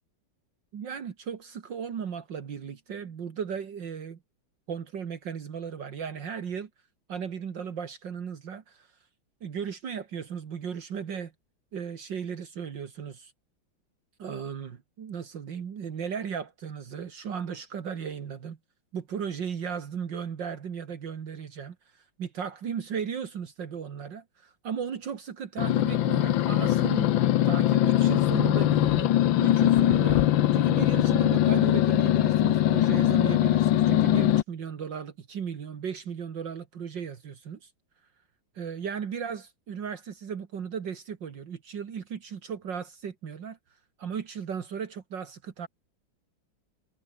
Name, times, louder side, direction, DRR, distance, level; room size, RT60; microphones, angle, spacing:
voice 1, 0.7-4.2 4.7-6.7 7.1-8.9 9.4-11.3 11.7-13.3 14.2-18.6 18.9-21.8 22.2-27.1 27.4-29.1 29.4-30.2 30.5-37.7 38.6-43.6 44.0-45.7, right 7 dB, 65° right, 2.3 m, -36 dB
sound 1, 25.6-34.4, left 12 dB, 75° left, 1.6 m, -22 dB
omnidirectional pair, 2.2 m